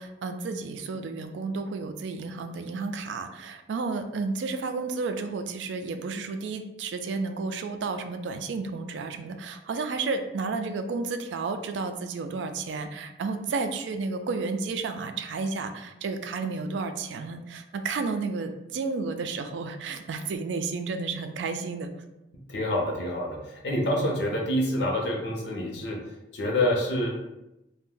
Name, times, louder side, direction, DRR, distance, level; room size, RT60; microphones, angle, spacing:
voice 1, 0.0-21.9, right 4 dB, 85° right, 8 dB, 0.3 m, -32 dB
voice 2, 22.5-26.0 26.3-27.1, left 1 dB, 75° left, 0 dB, 0.7 m, -27 dB
2.6 x 2.1 x 3.7 m, 0.92 s
head